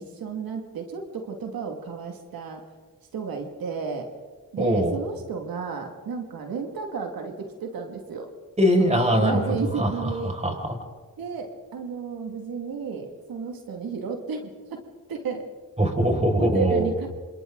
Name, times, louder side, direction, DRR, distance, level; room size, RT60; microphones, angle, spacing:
voice 1, 0.0-2.6 3.1-4.1 4.5-8.3 8.8-10.4 11.2-15.5 16.4-17.1, right 5 dB, 90° right, 3 dB, 2.4 m, -32 dB
voice 2, 4.6-4.9 8.6-10.8 15.8-16.9, equal, 20° right, 2 dB, 6.0 m, -22 dB
28.0 x 27.0 x 4.0 m, 1.4 s
cardioid pair, 65°, 34 cm